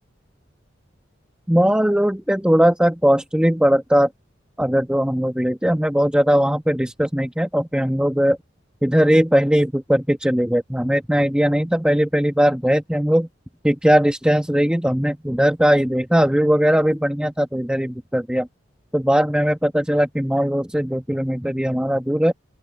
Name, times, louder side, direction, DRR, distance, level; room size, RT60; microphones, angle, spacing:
voice 1, 1.5-4.1 4.6-8.4 8.8-13.3 13.6-18.5 18.9-22.3, equal, 5° right, 1.3 m, -19 dB
open air
head